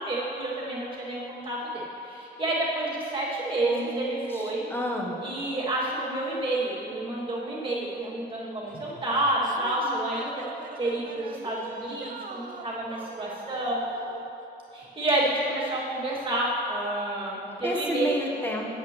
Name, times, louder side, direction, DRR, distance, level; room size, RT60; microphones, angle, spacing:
voice 1, 0.0-4.7 5.2-10.4 10.8-13.8 14.7-18.2, right 1 dB, 30° right, -7 dB, 2.2 m, -29 dB
voice 2, 3.6-5.2 17.6-18.7, left 1 dB, 10° left, -1 dB, 1.0 m, -31 dB
sound 1, 8.7-14.4, right 4 dB, 50° right, 0.6 m, -42 dB
17.5 x 8.1 x 3.1 m, 2.9 s
wide cardioid pair, 170°, 18 cm